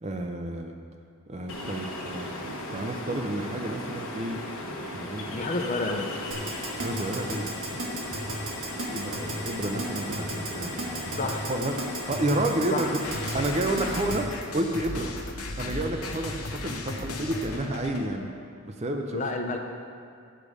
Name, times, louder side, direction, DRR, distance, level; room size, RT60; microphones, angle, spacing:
voice 1, 0.0-0.8 1.3-4.4 4.8-5.4 6.8-7.9 8.8-11.2 11.5-11.7 12.1-13.0 13.3-14.3 14.5-15.1 15.6-18.3 18.6-19.2, right 1 dB, 30° right, 4 dB, 0.5 m, -30 dB
Ocean, 1.5-14.1, left 1 dB, 75° left, 1.2 m, -37 dB
voice 2, 5.3-6.1 11.2-11.5 12.7-12.9 19.1-19.6, left 3 dB, 35° left, 3 dB, 0.5 m, -30 dB
Keyboard (musical), 6.3-14.2, right 2 dB, 65° right, 1.5 m, -34 dB
sound 1, 13.0-18.3, left 2 dB, 90° left, 0.8 m, -36 dB
8.9 x 6.5 x 4.9 m, 2.4 s
head